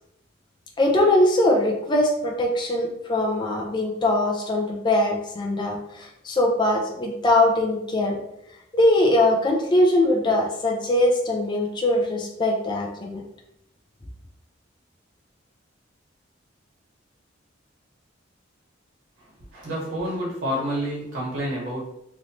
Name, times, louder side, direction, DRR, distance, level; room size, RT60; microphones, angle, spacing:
voice 1, 0.8-8.2 8.7-13.2, left 1 dB, 25° left, -1 dB, 0.5 m, -21 dB
voice 2, 19.5-21.8, equal, 80° right, -5 dB, 1.4 m, -28 dB
3.1 x 3.0 x 2.7 m, 0.80 s
head